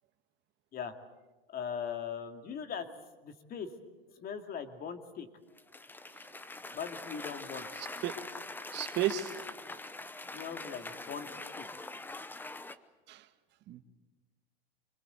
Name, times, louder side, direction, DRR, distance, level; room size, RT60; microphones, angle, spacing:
voice 1, 1.5-2.9 3.2-3.7 4.1-5.3 6.7-7.7 10.3-11.3 11.5-11.7, left 7 dB, 30° left, 7 dB, 2.5 m, -40 dB
Cheering / Applause, 5.6-12.7, left 2 dB, 5° left, 0.8 m, -43 dB
voice 2, 8.7-9.4 13.1-13.3 13.7-13.8, right 11 dB, 35° right, 9 dB, 1.6 m, -33 dB
26.0 x 21.0 x 8.2 m, 1.2 s
supercardioid pair, 130°, 30 cm